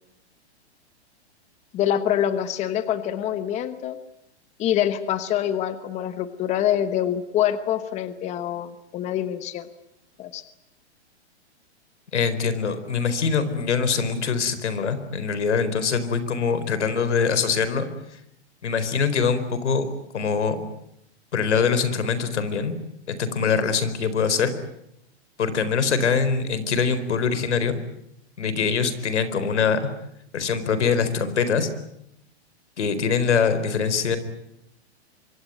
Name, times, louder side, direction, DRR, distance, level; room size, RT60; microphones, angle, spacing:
voice 1, 1.7-4.0 4.6-9.7 10.2-10.4, left 10 dB, 20° left, 12 dB, 1.1 m, -25 dB
voice 2, 12.1-17.9 18.6-19.9 20.1-20.6 21.3-22.7 23.1-24.5 25.4-27.8 28.4-29.9 30.3-31.7 32.8-34.2, left 6 dB, 85° left, 12 dB, 4.3 m, -23 dB
24.5 x 24.5 x 9.2 m, 0.78 s
hypercardioid pair, 150°, 34 cm